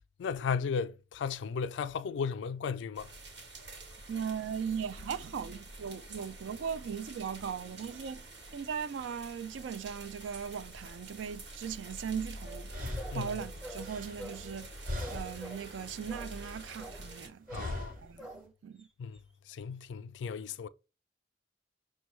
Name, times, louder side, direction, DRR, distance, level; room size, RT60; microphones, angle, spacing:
voice 1, 0.2-3.1 13.1-13.4 17.5-18.0 19.0-19.2 19.5-20.7, left 6 dB, 75° left, 0.3 m, -35 dB
sound 1, 2.9-17.3, right 1 dB, 70° right, 1.1 m, -47 dB
voice 2, 4.1-8.3 8.5-18.9, right 7 dB, 85° right, 0.3 m, -39 dB
sound 2, 12.1-12.2 12.7-14.6 14.8-15.6 15.9-16.8 17.5-18.2, left 1 dB, 50° right, 0.9 m, -40 dB
sound 3, 12.4-14.7 15.0-15.8 16.1-16.5 16.8-17.2 17.5-17.8 18.2-18.5 18.8-18.9 19.1-19.2, right 1 dB, 5° right, 0.4 m, -47 dB
5.3 x 2.2 x 3.0 m
head